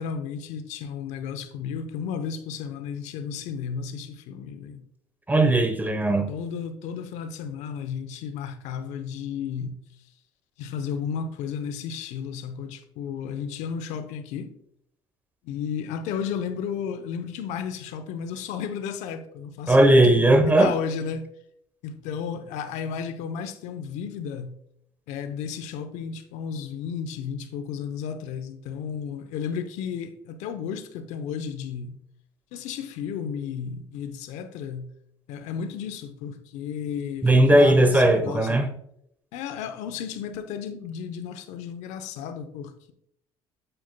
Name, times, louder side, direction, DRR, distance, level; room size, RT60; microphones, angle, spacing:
voice 1, 0.0-4.8 6.3-9.8 10.6-14.5 15.4-21.3 21.8-24.6 25.1-32.0 32.5-34.9 35.3-38.7 39.3-42.9, left 7 dB, 80° left, 0.8 m, -33 dB
voice 2, 5.3-6.3 19.7-20.7 37.2-38.7, right 1 dB, 15° right, 0.9 m, -18 dB
7.9 x 7.9 x 2.2 m
cardioid pair, 100°, 12 cm